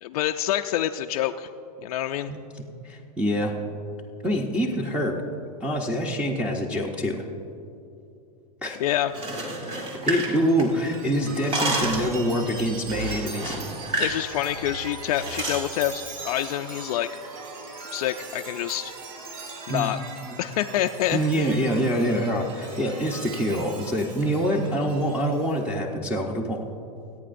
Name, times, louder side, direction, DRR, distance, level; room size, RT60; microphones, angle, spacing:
voice 1, 0.0-1.5 1.8-2.3 8.8-9.1 14.0-17.1 17.9-18.9 19.7-20.0 20.4-21.5, left 12 dB, 75° left, 5 dB, 0.4 m, -27 dB
voice 2, 2.8-3.5 4.2-5.2 5.6-7.2 8.6-8.8 9.9-13.6 19.7-19.9 20.3-20.4 21.1-26.7, equal, 5° right, 1 dB, 0.7 m, -25 dB
sound 1, 9.0-10.9 11.2-12.1 12.9-14.2 14.5-14.7 15.1-15.7, right 2 dB, 35° right, 1.8 m, -30 dB
Chime, 9.8-25.6, right 3 dB, 65° right, 2.9 m, -40 dB
25.0 x 9.1 x 2.6 m, 2.7 s
supercardioid pair, 140°, 20 cm